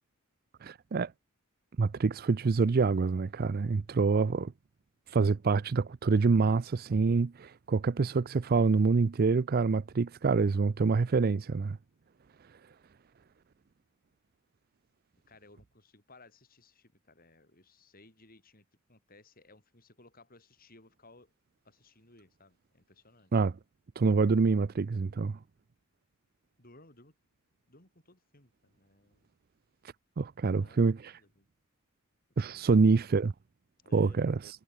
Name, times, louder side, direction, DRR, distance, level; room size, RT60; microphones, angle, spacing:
voice 1, 0.6-1.1 1.8-4.5 5.1-11.8 23.3-23.5 24.0-25.4 30.2-31.1 32.4-33.3 33.9-34.4, right 4 dB, 45° right, 0.4 m, -26 dB
voice 2, 15.3-21.3 21.6-23.3 26.6-27.1 27.7-29.3 30.4-31.5 32.5-32.9 33.8-34.2, left 2 dB, 40° left, 7.7 m, -59 dB
head